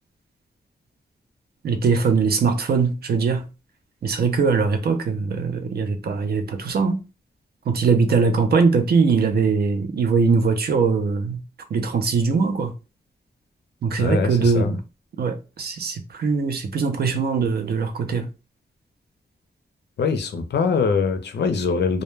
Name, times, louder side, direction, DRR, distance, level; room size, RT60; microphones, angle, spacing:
voice 1, 1.6-3.5 4.0-7.0 7.7-11.4 11.7-12.7 13.8-14.8 15.2-18.3, right 5 dB, 65° right, 0.5 m, -21 dB
voice 2, 14.0-14.7 20.0-22.0, left 5 dB, 80° left, 0.5 m, -23 dB
2.2 x 2.1 x 3.1 m
wide cardioid pair, 175°, 17 cm